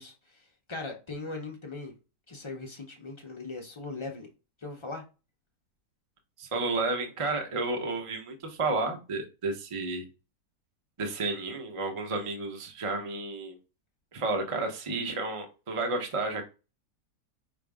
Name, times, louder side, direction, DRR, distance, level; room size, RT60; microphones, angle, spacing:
voice 1, 0.0-1.9 2.3-4.3 4.6-5.0, left 3 dB, 50° left, 0.3 m, -39 dB
voice 2, 6.4-10.0 11.0-13.6 14.1-16.4, right 3 dB, 30° right, 0.6 m, -31 dB
5.6 x 2.5 x 3.5 m
omnidirectional pair, 1.8 m